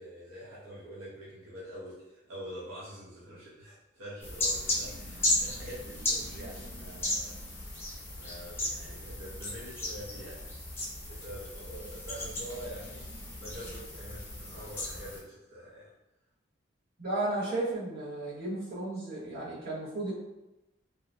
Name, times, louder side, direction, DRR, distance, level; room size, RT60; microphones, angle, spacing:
voice 1, 0.0-7.3 8.1-10.5 11.1-13.1 13.3-15.9, equal, 85° right, -8 dB, 0.8 m, -45 dB
sound 1, 4.2-15.2, left 1 dB, 10° left, 0.6 m, -35 dB
voice 2, 17.0-20.1, right 2 dB, 50° right, -9 dB, 1.3 m, -34 dB
2.9 x 2.1 x 2.5 m, 0.97 s
head